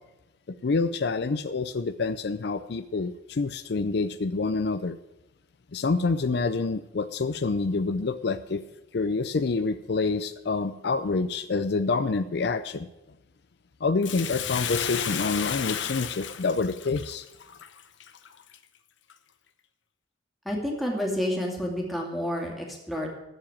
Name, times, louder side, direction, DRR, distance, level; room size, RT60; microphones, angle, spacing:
voice 1, 0.6-5.0 5.7-8.6 8.9-12.9 13.8-17.3, left 4 dB, 60° left, 12 dB, 0.5 m, -27 dB
Bathtub (filling or washing), 14.0-18.6 19.1-19.2, left 8 dB, 90° left, 0.8 m, -33 dB
voice 2, 20.4-23.1, equal, ahead, -1 dB, 2.4 m, -29 dB
14.0 x 4.9 x 9.1 m, 0.93 s
head